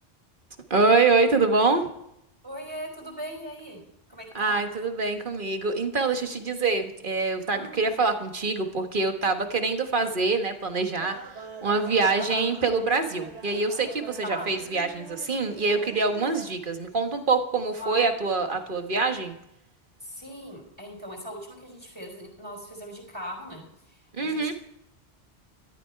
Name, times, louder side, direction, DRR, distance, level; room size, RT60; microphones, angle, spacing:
voice 1, 0.7-1.9 4.3-11.2 11.6-19.3 24.1-24.5, right 3 dB, 50° right, 6 dB, 1.7 m, -25 dB
voice 2, 2.4-3.8 4.1-4.6 7.5-7.8 12.2-12.4 14.2-14.5 17.7-18.1 20.0-24.5, equal, 25° right, 1 dB, 4.8 m, -39 dB
sound 1, 11.0-16.5, right 4 dB, 80° right, 1.7 m, -44 dB
13.5 x 13.0 x 4.6 m, 0.78 s
omnidirectional pair, 1.1 m